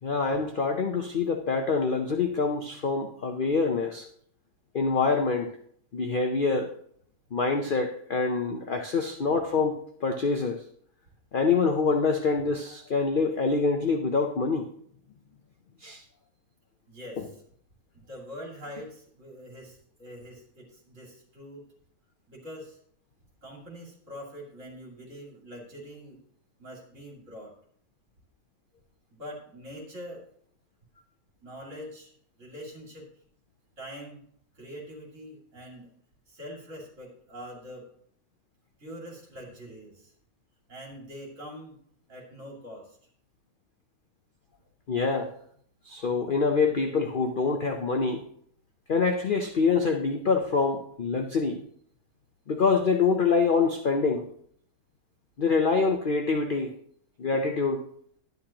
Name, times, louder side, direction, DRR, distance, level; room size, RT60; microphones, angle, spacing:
voice 1, 0.0-4.1 4.7-5.5 5.9-6.7 7.3-10.6 11.3-14.7 15.8-16.0 17.2-17.3 44.9-45.3 45.8-48.3 48.9-51.6 52.5-54.3 55.4-56.7 57.2-57.9, left 4 dB, 55° left, 4 dB, 0.6 m, -25 dB
voice 2, 16.9-17.4 17.9-21.7 22.3-22.8 23.4-26.2 26.6-27.5 29.1-30.2 31.4-32.1 32.4-33.1 33.8-34.2 34.5-35.9 36.3-37.9 38.8-40.1 40.7-41.8 42.1-43.0, equal, 50° right, -2 dB, 2.9 m, -44 dB
11.5 x 9.4 x 2.9 m, 0.64 s
omnidirectional pair, 1.7 m